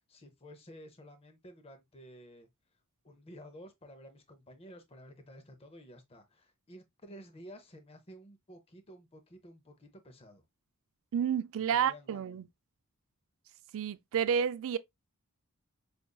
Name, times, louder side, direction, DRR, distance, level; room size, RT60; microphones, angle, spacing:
voice 1, 0.0-2.5 3.0-10.4 11.6-12.4, equal, 25° left, 0.6 m, -52 dB
voice 2, 11.1-12.4 13.7-14.8, right 8 dB, 65° right, 0.3 m, -30 dB
5.0 x 2.5 x 2.2 m
head